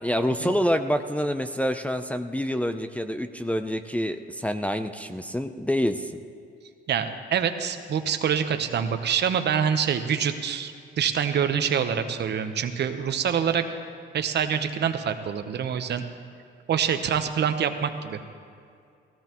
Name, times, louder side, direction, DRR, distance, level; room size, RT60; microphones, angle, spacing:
voice 1, 0.0-6.2, equal, 5° left, 6 dB, 0.5 m, -27 dB
voice 2, 6.9-13.7 14.1-16.0 16.7-18.2, right 8 dB, 60° right, 8 dB, 0.9 m, -26 dB
17.5 x 16.5 x 3.0 m, 2.3 s
cardioid pair, 90°, 20 cm